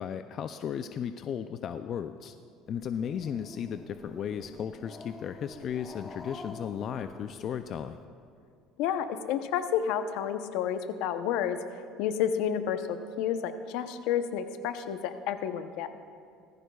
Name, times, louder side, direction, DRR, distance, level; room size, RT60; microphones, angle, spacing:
voice 1, 0.0-2.3 2.7-8.0, left 8 dB, 45° left, 9 dB, 0.4 m, -35 dB
Growling, 2.7-8.0, left 3 dB, 20° left, 0.9 m, -47 dB
voice 2, 8.8-11.6 12.0-15.9, left 9 dB, 75° left, 9 dB, 0.7 m, -30 dB
18.0 x 15.0 x 2.3 m, 2.3 s
cardioid pair, 130°, 0 cm